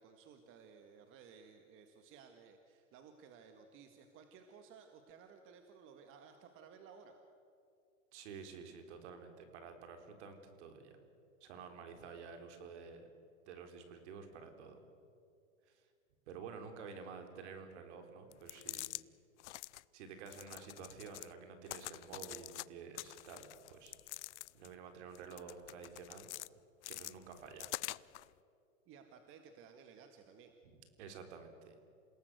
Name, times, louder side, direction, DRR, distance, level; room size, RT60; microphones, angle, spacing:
voice 1, 0.0-7.2 16.9-17.0 28.9-30.5, right 6 dB, 30° right, 6 dB, 1.8 m, -58 dB
voice 2, 8.1-11.0 11.4-13.1 13.5-14.8 15.7-15.8 16.3-19.0 19.9-24.3 24.5-26.3 26.9-27.7 30.6-30.7 31.0-31.8, right 5 dB, 55° right, 6 dB, 4.0 m, -51 dB
sound 1, 18.3-19.0 19.4-19.8 20.3-21.3 21.7-22.7 23.0-24.7 25.2-26.5 26.8-28.3, left 17 dB, 55° left, 0.6 m, -46 dB
28.0 x 18.0 x 8.0 m, 2.4 s
hypercardioid pair, 135°, 40 cm